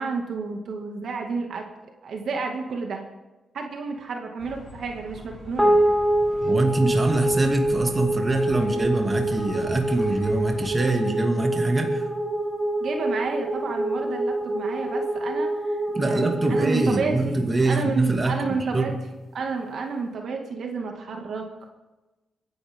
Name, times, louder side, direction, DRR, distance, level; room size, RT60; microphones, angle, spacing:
voice 1, 0.0-1.6 2.0-3.0 3.5-5.8 12.8-18.9 19.3-21.5, right 4 dB, 70° right, 2 dB, 2.2 m, -30 dB
sound 1, 4.4-10.8, left 3 dB, 50° left, 6.8 m, -44 dB
sound 2, 5.6-18.1, right 1 dB, ahead, 2.4 m, -26 dB
voice 2, 6.4-12.0 15.9-18.5 18.7-19.0, right 2 dB, 30° right, 2 dB, 2.4 m, -24 dB
23.5 x 11.5 x 3.7 m, 1.1 s
cardioid pair, 85°, 0 cm